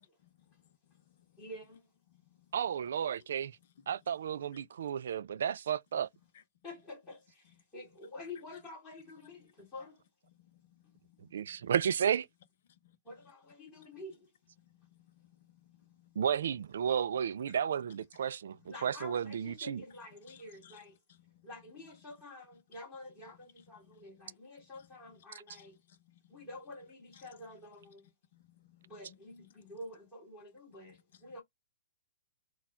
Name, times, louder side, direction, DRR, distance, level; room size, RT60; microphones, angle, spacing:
voice 1, 0.2-0.7 1.1-1.4 2.1-2.6 10.4-11.6 12.7-13.0 13.8-13.9 14.7-16.2 17.5-17.6 20.3-20.8 21.1-21.5 23.6-24.0 24.8-24.9 25.5-26.5 27.1-27.2 28.3-29.2 29.7-29.8, left 11 dB, 45° left, 0.8 m, -63 dB
voice 2, 1.4-1.8 3.0-3.2 6.6-10.0 13.0-14.3 18.7-21.0 21.4-25.8 26.3-28.1 28.8-31.4, left 2 dB, 15° left, 2.0 m, -49 dB
voice 3, 2.5-3.6 3.9-6.1 11.3-12.3 16.2-19.8, right 8 dB, 60° right, 0.4 m, -32 dB
4.2 x 2.3 x 4.2 m
hypercardioid pair, 175°, 0 cm